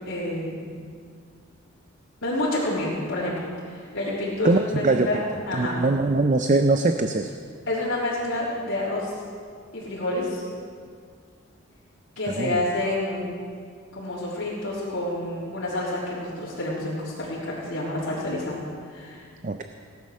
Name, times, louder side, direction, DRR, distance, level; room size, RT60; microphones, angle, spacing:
voice 1, 0.1-0.7 2.2-3.3 3.7-5.2 5.5-5.7 7.7-9.1 9.7-10.4 12.2-13.2 13.9-19.2, left 1 dB, 70° left, -8 dB, 3.7 m, -28 dB
voice 2, 4.4-5.2 5.6-7.3 12.3-12.6 19.4-19.6, right 3 dB, 35° right, 7 dB, 0.5 m, -22 dB
17.5 x 10.5 x 6.5 m, 2.1 s
head